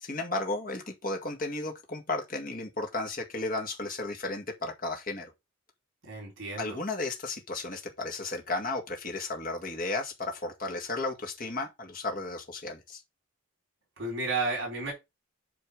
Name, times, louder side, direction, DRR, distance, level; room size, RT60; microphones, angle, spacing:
voice 1, 0.0-5.3 6.6-13.0, left 2 dB, 40° left, 2.0 m, -34 dB
voice 2, 6.1-6.8 14.0-14.9, right 3 dB, 60° right, 4.2 m, -32 dB
8.3 x 4.4 x 5.1 m
head